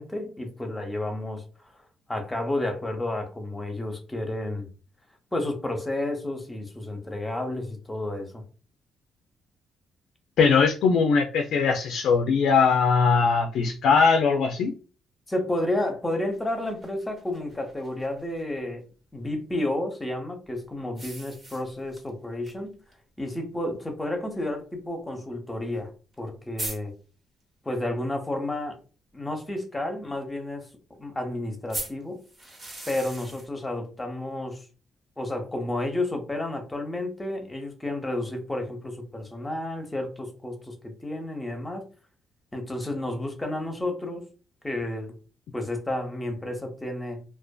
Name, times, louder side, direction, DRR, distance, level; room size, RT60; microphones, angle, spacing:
voice 1, 0.0-1.4 1.7-1.8 2.1-4.7 5.3-8.4 15.3-18.8 19.1-22.7 23.2-25.9 26.2-26.9 27.6-28.8 29.1-30.7 31.0-32.2 32.9-34.7 35.2-41.8 42.5-44.2 44.6-45.1 45.5-47.2, left 1 dB, 15° left, 4 dB, 0.7 m, -31 dB
voice 2, 10.4-14.7, left 5 dB, 75° left, 4 dB, 0.3 m, -20 dB
sound 1, 16.3-18.4 20.9-22.1 22.5-22.6 22.9-23.0 23.9-24.0 25.8-25.9 26.1-26.2 26.6-26.8 31.7-33.5, right 1 dB, 30° right, 0.9 m, -38 dB
2.5 x 2.2 x 2.2 m, 0.36 s
cardioid pair, 90°, 0 cm